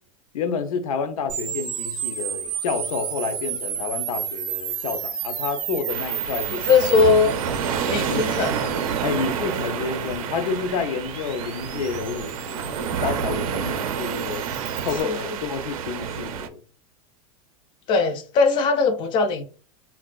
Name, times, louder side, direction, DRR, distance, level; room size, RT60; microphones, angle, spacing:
voice 1, 0.3-6.6 8.0-8.3 9.0-14.5 14.8-16.6, left 5 dB, 85° left, 0.6 m, -29 dB
sound 1, 1.3-15.0, right 8 dB, 30° right, 0.4 m, -33 dB
sound 2, 5.9-16.5, right 7 dB, 80° right, 0.5 m, -29 dB
voice 2, 6.5-7.3 7.9-8.7 15.0-15.4 17.9-19.4, left 4 dB, 30° left, 0.4 m, -20 dB
3.6 x 2.4 x 2.3 m
supercardioid pair, 155°, 18 cm